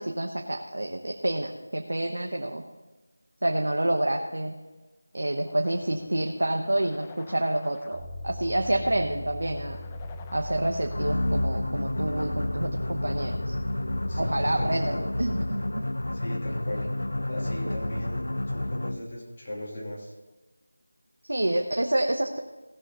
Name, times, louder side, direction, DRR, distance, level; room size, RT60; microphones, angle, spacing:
voice 1, 0.0-2.6 3.4-4.5 5.1-9.8 10.3-13.6 14.2-15.9 17.7-17.8 21.2-22.4, right 1 dB, 85° right, 3 dB, 1.1 m, -28 dB
sound 1, 5.4-11.4, left 6 dB, 10° left, 0.4 m, -49 dB
sound 2, 7.9-14.6, left 1 dB, 20° right, 4.1 m, -39 dB
sound 3, 10.9-19.2, left 1 dB, 85° left, 0.5 m, -30 dB
voice 2, 14.1-15.1 16.1-20.1, equal, 30° left, -5 dB, 2.8 m, -38 dB
17.0 x 7.4 x 4.0 m, 1.2 s
figure-of-eight pair, 175°, 0 cm